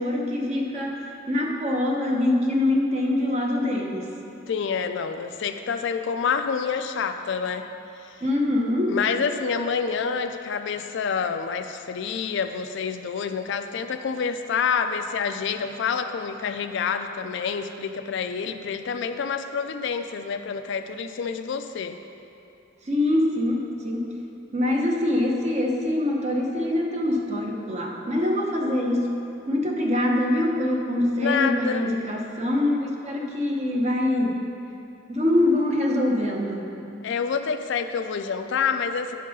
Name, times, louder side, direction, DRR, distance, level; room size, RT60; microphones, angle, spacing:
voice 1, 0.0-4.1 8.2-9.0 22.8-24.2 24.5-29.1 29.5-34.4 35.1-36.8, left 1 dB, 35° right, 0 dB, 0.9 m, -24 dB
voice 2, 4.5-7.7 8.0-8.1 8.9-22.0 31.2-31.9 37.0-39.2, left 6 dB, 65° left, 7 dB, 0.4 m, -27 dB
10.0 x 3.8 x 5.4 m, 2.8 s
head